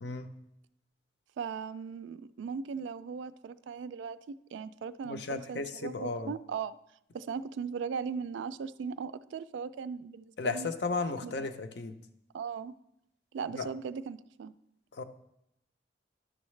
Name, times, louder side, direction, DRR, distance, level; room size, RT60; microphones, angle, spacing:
voice 1, 1.4-6.8 7.1-10.7 11.2-11.5 12.3-12.7 13.3-14.5, right 6 dB, 85° right, 15 dB, 0.3 m, -38 dB
voice 2, 5.1-6.3 10.4-12.0 13.5-13.7 14.9-15.0, left 3 dB, 65° left, 8 dB, 0.6 m, -34 dB
11.0 x 6.3 x 3.2 m, 0.79 s
head